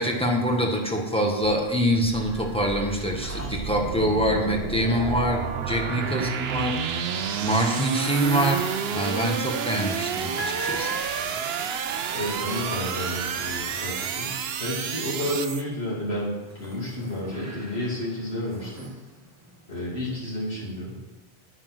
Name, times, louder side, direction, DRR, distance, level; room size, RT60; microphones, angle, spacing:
voice 1, 0.0-7.0 7.4-8.7 8.9-11.0, equal, 5° left, 0 dB, 1.6 m, -25 dB
sound 1, 0.8-1.4 1.8-15.0 15.6-20.1, right 1 dB, 15° right, 1.6 m, -42 dB
sound 2, 1.4-15.6, right 7 dB, 75° right, 1.0 m, -30 dB
voice 2, 6.0-6.3 12.1-18.9 19.7-21.0, left 1 dB, 85° left, -6 dB, 3.2 m, -31 dB
9.6 x 8.9 x 6.1 m, 1.1 s
omnidirectional pair, 1.0 m